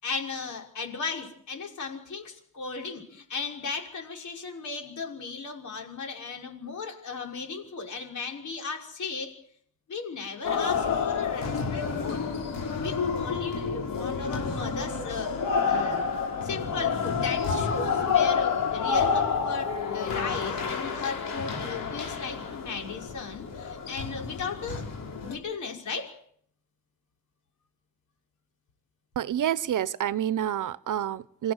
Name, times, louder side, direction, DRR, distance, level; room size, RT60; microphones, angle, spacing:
voice 1, 0.0-9.3 9.9-12.3 12.8-15.4 15.7-16.0 16.4-24.8 25.2-26.1, left 4 dB, 60° left, 5.9 m, -36 dB
sound 1, 10.4-25.3, left 6 dB, 80° left, 5.4 m, -29 dB
voice 2, 29.2-31.5, right 10 dB, 65° right, 1.0 m, -28 dB
27.0 x 16.5 x 8.1 m
cardioid pair, 130°, 33 cm